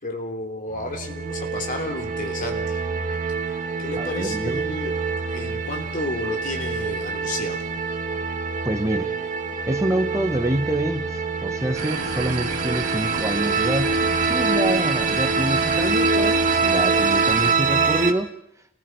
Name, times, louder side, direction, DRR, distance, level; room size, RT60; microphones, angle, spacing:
voice 1, 0.0-2.8 3.8-4.9 5.3-7.6, left 1 dB, 40° left, 4 dB, 3.1 m, -32 dB
sound 1, 0.7-18.1, right 4 dB, 35° right, 1.4 m, -25 dB
voice 2, 4.0-4.8 8.6-9.1 9.7-18.3, right 1 dB, 15° right, 6 dB, 1.1 m, -27 dB
sound 2, 11.7-17.5, right 5 dB, 90° right, 2.4 m, -31 dB
29.5 x 19.5 x 4.6 m, 0.69 s
head